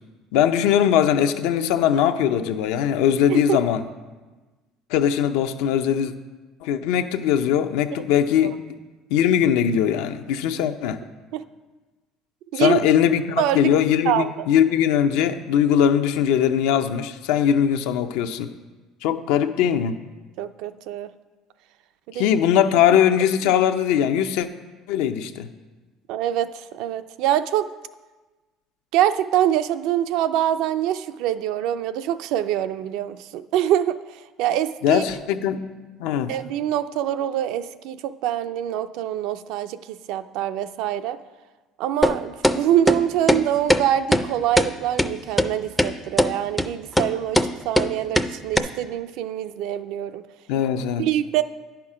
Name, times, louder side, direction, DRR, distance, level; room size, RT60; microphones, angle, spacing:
voice 1, 0.3-3.8 4.9-6.1 6.6-8.5 9.1-11.0 12.5-18.5 19.0-19.9 22.1-24.5 24.9-25.5 34.8-35.6 36.0-36.3 50.5-51.0, left 9 dB, 90° left, 8 dB, 0.6 m, -20 dB
voice 2, 13.4-13.7 14.1-14.5 20.4-21.1 22.1-22.4 22.9-23.0 26.1-27.7 28.9-35.0 36.3-41.2 41.8-50.2 51.0-51.4, right 11 dB, 70° right, 12 dB, 0.4 m, -24 dB
sound 1, 42.0-42.2 42.4-42.6 42.9-43.0 43.3-43.4 43.7-43.8 44.1-44.2 44.6-44.7 45.0-45.1 45.4-45.5 45.8-45.9 46.2-46.3 46.6-46.7 47.0-47.1 47.3-47.5 47.8-47.9 48.2-48.3 48.6-48.7, left 1 dB, ahead, 0.3 m, -18 dB
10.5 x 5.8 x 4.9 m, 1.3 s
cardioid pair, 140°, 0 cm